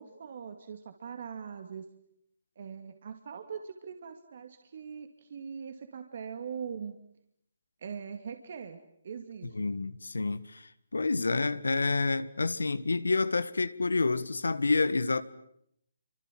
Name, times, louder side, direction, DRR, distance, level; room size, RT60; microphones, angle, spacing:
voice 1, 0.0-1.8 2.6-7.0 7.8-8.8 9.0-9.7, right 6 dB, 55° right, 2.5 m, -41 dB
voice 2, 9.4-15.2, left 3 dB, 90° left, 1.7 m, -29 dB
28.5 x 25.5 x 7.7 m
hypercardioid pair, 155°, 0 cm